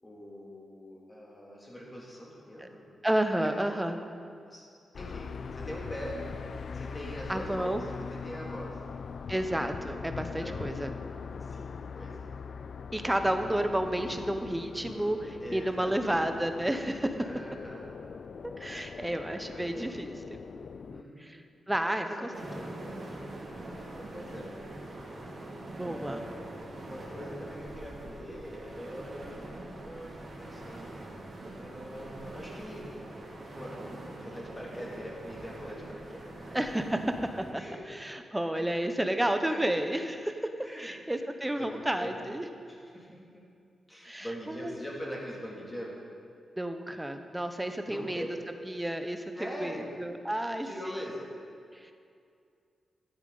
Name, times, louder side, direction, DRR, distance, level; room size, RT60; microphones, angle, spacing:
voice 1, 0.0-2.8 3.4-3.8 4.5-4.6 4.9-6.2 6.7-8.8 10.2-10.7 11.4-11.7 12.0-12.3 15.4-16.3 17.2-17.9 19.5-20.3 20.9-21.3 21.8-22.3 22.5-23.0 24.0-24.5 25.8-26.3 26.8-29.5 29.8-30.9 31.5-33.1 33.5-36.2 37.6-37.7 38.5-38.6 39.2-39.6 40.6-40.9 41.6-42.2 42.7-43.4 43.9-45.9 47.9-48.3 49.3-50.0 50.6-51.3, equal, 15° left, -4 dB, 2.5 m, -42 dB
voice 2, 3.0-4.0 7.3-7.8 9.3-10.9 12.9-17.2 18.6-20.1 21.2-22.3 25.8-26.2 36.5-37.6 38.0-40.5 40.8-42.5 44.0-44.8 46.6-48.2 48.6-51.0 51.7-51.9, right 1 dB, 10° right, 7 dB, 0.7 m, -31 dB
sound 1, 4.9-21.0, left 5 dB, 60° left, 0.3 m, -41 dB
sound 2, 22.3-37.5, right 1 dB, 50° right, 2.3 m, -43 dB
13.0 x 8.7 x 3.9 m, 2.3 s
cardioid pair, 95°, 0 cm